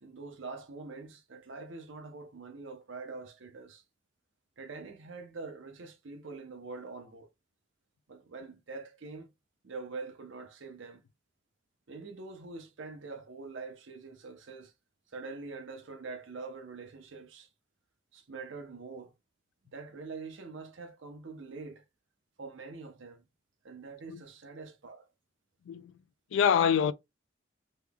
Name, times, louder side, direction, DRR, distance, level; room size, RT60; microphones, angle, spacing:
voice 1, 0.0-3.8 4.6-7.3 8.1-9.3 9.6-11.0 11.9-14.7 15.1-17.5 18.1-19.1 19.7-21.8 22.4-23.2 23.6-25.1, right 4 dB, 80° right, 0.7 m, -44 dB
voice 2, 26.3-26.9, left 7 dB, 75° left, 0.3 m, -25 dB
3.1 x 2.3 x 3.4 m
head